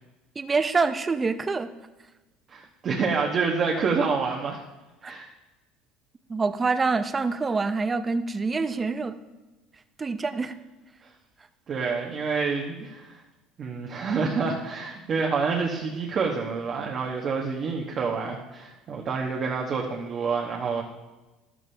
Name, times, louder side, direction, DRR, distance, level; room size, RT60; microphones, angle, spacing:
voice 1, 0.4-1.7 5.0-5.1 6.3-9.1 10.0-10.5, right 4 dB, 20° right, 10 dB, 0.6 m, -26 dB
voice 2, 2.5-4.6 5.0-5.3 11.7-13.1 13.6-20.8, right 5 dB, 40° right, 0 dB, 1.2 m, -27 dB
12.5 x 12.0 x 3.4 m, 1.1 s
cardioid pair, 130°, 0 cm